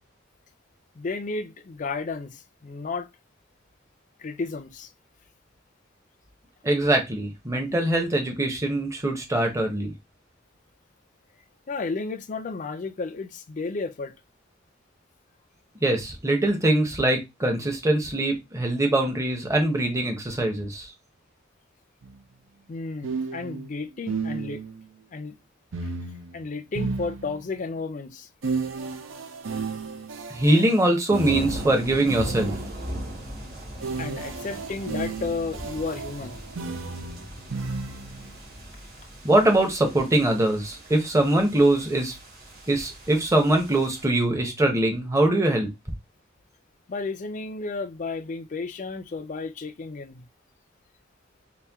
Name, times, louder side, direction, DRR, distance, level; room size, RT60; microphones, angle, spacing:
voice 1, 1.0-3.1 4.2-4.9 11.7-14.1 22.7-24.6 25.1-25.4 26.3-28.3 34.0-36.4 46.9-50.3, left 3 dB, 40° left, 0.5 m, -32 dB
voice 2, 6.6-9.9 15.8-20.9 30.3-32.5 39.2-42.2 42.7-45.7, right 1 dB, 15° right, 0.8 m, -22 dB
sound 1, 22.0-22.2 23.0-24.8 25.7-27.6 28.4-32.9 33.8-38.3, right 4 dB, 80° right, 0.6 m, -33 dB
sound 2, 31.2-44.0, equal, 55° right, 2.3 m, -39 dB
4.3 x 2.1 x 3.5 m
head